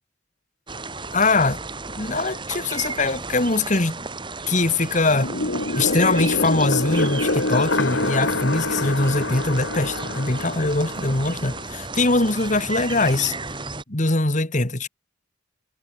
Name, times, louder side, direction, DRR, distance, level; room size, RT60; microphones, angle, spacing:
sound 1, 0.7-13.8, right 3 dB, 25° right, 3.7 m, -34 dB
voice 1, 1.1-1.6 2.0-4.1 4.5-5.3 5.8-13.3 13.9-14.9, left 2 dB, 40° left, 1.8 m, -22 dB
sound 2, 5.1-11.6, left 2 dB, 65° left, 2.4 m, -26 dB
head